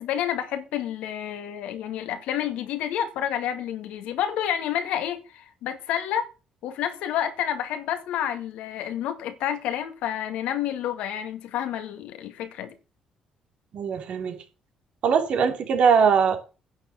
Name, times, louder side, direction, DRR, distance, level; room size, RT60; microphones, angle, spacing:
voice 1, 0.0-6.3 6.6-12.7, left 10 dB, 70° left, 2.1 m, -29 dB
voice 2, 13.7-14.4 15.0-16.4, right 6 dB, 60° right, 3.2 m, -21 dB
10.5 x 7.0 x 8.5 m
hypercardioid pair, 50°, 2 cm